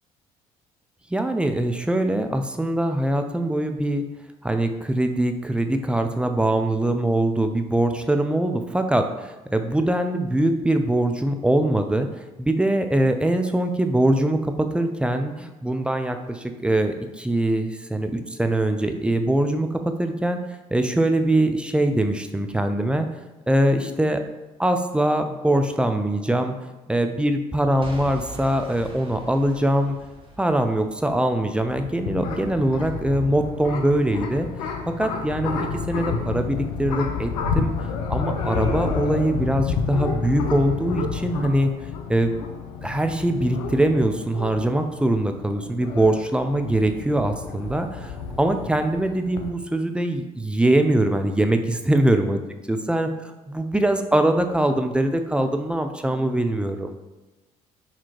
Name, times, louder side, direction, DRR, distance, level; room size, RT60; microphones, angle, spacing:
voice 1, 1.1-4.0 4.4-12.1 12.4-19.7 20.0-20.4 20.7-23.1 23.5-24.2 24.6-26.5 26.9-30.0 30.4-34.5 35.0-37.3 37.6-37.7 38.1-41.7 42.1-42.3 42.8-52.4 52.7-56.9, right 1 dB, 5° right, 6 dB, 0.3 m, -22 dB
Boom / Shatter / Crushing, 27.8-31.8 32.3-32.4, right 1 dB, 30° right, 0.8 m, -42 dB
sound 1, 31.4-49.5, left 5 dB, 80° left, 0.4 m, -30 dB
4.1 x 2.8 x 2.9 m, 1.1 s
hypercardioid pair, 55°, 19 cm